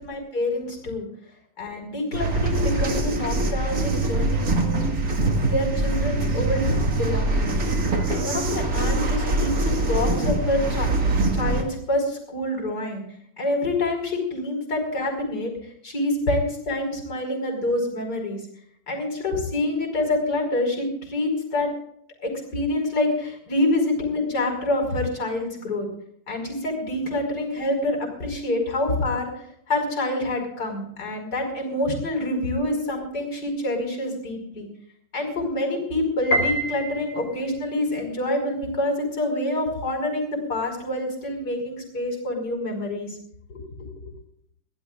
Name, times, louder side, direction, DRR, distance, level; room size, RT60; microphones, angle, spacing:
voice 1, 0.0-1.1 1.6-4.9 5.4-7.6 8.1-10.9 11.3-13.0 13.4-15.5 15.8-18.4 18.9-21.7 22.2-25.9 26.3-29.3 29.7-34.7 35.1-43.1 43.5-43.6, left 1 dB, 45° left, 2 dB, 5.7 m, -26 dB
sound 1, 2.1-11.6, right 2 dB, 45° right, 2.5 m, -23 dB
Piano, 36.3-37.6, equal, 80° left, 4.4 m, -26 dB
23.5 x 17.5 x 2.5 m, 0.65 s
omnidirectional pair, 2.3 m